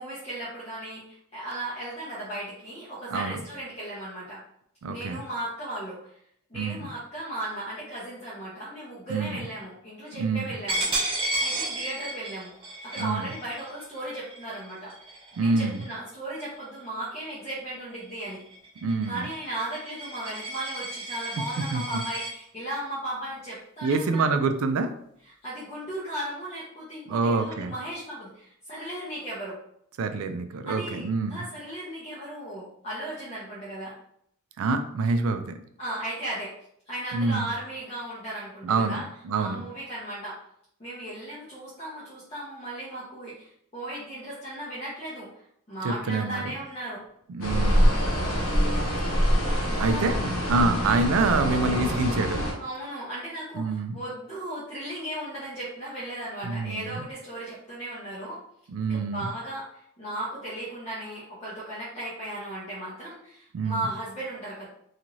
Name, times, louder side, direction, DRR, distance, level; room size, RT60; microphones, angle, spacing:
voice 1, 0.0-4.4 4.9-6.2 6.5-14.9 15.4-18.4 19.1-24.4 25.4-29.6 30.6-33.9 35.8-36.5 36.9-39.1 39.4-40.4 40.8-45.3 45.7-47.0 47.8-48.3 49.6-50.1 50.7-51.0 52.6-58.4 58.9-64.7, right 1 dB, 30° left, -8 dB, 0.6 m, -36 dB
voice 2, 3.1-3.4 4.8-5.2 6.5-6.9 9.1-9.4 10.2-10.5 13.0-13.3 15.4-15.8 18.8-19.3 21.7-22.0 23.8-24.9 27.1-27.7 30.0-31.4 34.6-35.6 37.1-37.5 38.6-39.6 45.8-46.5 47.3-47.9 49.8-52.5 53.6-54.0 56.4-57.0 58.7-59.3 63.5-63.9, right 3 dB, 75° right, 8 dB, 0.3 m, -26 dB
Coin (dropping), 10.7-16.1 16.5-16.8 17.2-22.3, right 2 dB, 25° right, 0.6 m, -33 dB
sound 1, 47.4-52.5, equal, 90° left, 0.8 m, -24 dB
2.6 x 2.4 x 3.0 m, 0.70 s
head